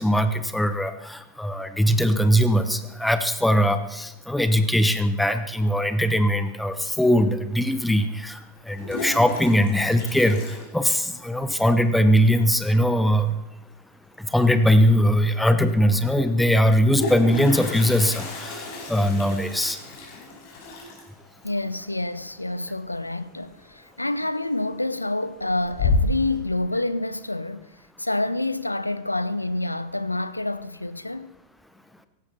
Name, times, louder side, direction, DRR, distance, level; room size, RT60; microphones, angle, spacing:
voice 1, 0.0-13.3 14.2-19.8, equal, 5° left, 1.0 m, -21 dB
Toilet flush, 7.3-7.4 8.5-11.4 11.6-11.7 12.0-12.1 12.4-12.8 14.5-14.6 14.9-15.0 16.6-23.3 23.6-24.0 24.4-25.0 25.4-26.4, left 3 dB, 50° left, 5.1 m, -31 dB
voice 2, 21.4-27.7 28.0-31.3, left 2 dB, 85° left, 0.7 m, -28 dB
17.5 x 15.5 x 4.3 m
figure-of-eight pair, 90°, 0 cm